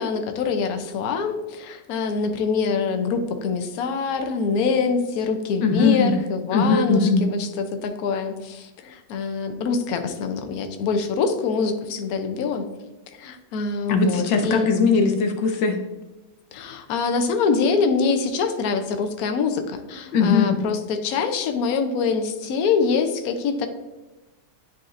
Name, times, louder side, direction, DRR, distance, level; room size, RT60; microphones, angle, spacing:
voice 1, 0.0-12.6 13.1-14.7 16.5-23.7, left 5 dB, 65° left, 6 dB, 1.0 m, -24 dB
voice 2, 5.6-6.2 6.5-7.3 13.9-15.8 20.1-20.6, left 4 dB, 85° left, 5 dB, 1.5 m, -20 dB
10.0 x 4.2 x 2.5 m, 1.1 s
omnidirectional pair, 2.0 m